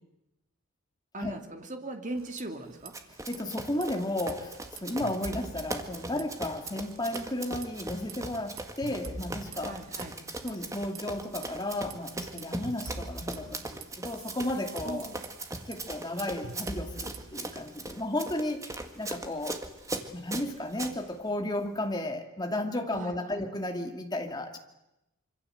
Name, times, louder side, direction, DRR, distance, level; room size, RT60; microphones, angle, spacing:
voice 1, 1.1-2.9 9.6-10.2 14.8-15.2 22.9-23.4, right 1 dB, 35° right, 5 dB, 2.6 m, -39 dB
sound 1, 2.1-2.9 3.2-3.4 3.7-6.4 6.7-7.2 7.6-11.0 11.4-17.4, right 3 dB, 65° right, 1.6 m, -45 dB
Run, 2.9-20.9, right 2 dB, 15° right, 1.8 m, -40 dB
voice 2, 3.3-9.8 10.4-15.1 15.6-19.6 20.1-24.6, left 1 dB, 20° left, 4 dB, 2.4 m, -34 dB
26.0 x 24.5 x 7.9 m, 0.90 s
head